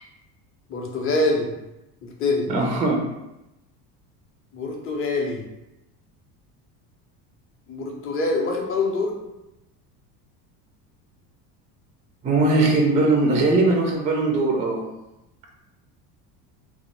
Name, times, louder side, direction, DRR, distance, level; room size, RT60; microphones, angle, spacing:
voice 1, 0.7-1.5 2.0-2.5 4.5-5.4 7.7-9.2, left 2 dB, 30° left, 0 dB, 0.6 m, -25 dB
voice 2, 2.5-3.0 12.2-14.8, right 2 dB, 15° right, 1 dB, 0.3 m, -20 dB
2.2 x 2.1 x 2.9 m, 0.92 s
supercardioid pair, 85°, 48 cm